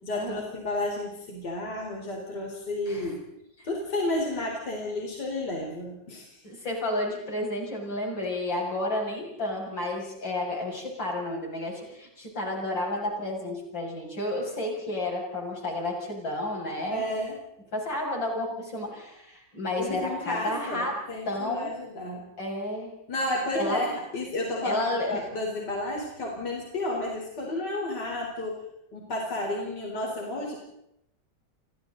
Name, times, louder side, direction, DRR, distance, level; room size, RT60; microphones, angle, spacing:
voice 1, 0.0-3.2 3.6-6.4 16.9-17.4 19.8-22.3 23.1-28.6 28.9-30.6, left 1 dB, 65° left, -1 dB, 4.8 m, -32 dB
voice 2, 6.4-17.1 17.7-20.9 21.3-21.7 22.4-22.9 23.5-23.8 24.6-25.3, left 1 dB, 90° left, -1 dB, 7.5 m, -31 dB
30.0 x 25.0 x 4.0 m, 0.80 s
omnidirectional pair, 2.0 m